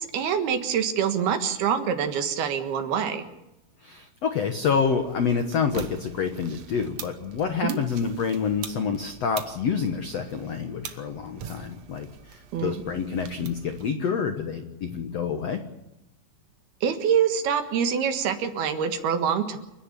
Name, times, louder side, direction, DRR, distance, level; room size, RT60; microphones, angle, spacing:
voice 1, 0.0-3.2 7.6-7.8 12.5-12.7 16.8-19.6, right 7 dB, 70° right, 8 dB, 3.4 m, -25 dB
voice 2, 3.8-15.6, left 6 dB, 70° left, 6 dB, 1.5 m, -28 dB
sound 1, 4.6-13.9, right 8 dB, 85° right, 1.4 m, -43 dB
29.5 x 10.5 x 9.9 m, 0.92 s
omnidirectional pair, 5.0 m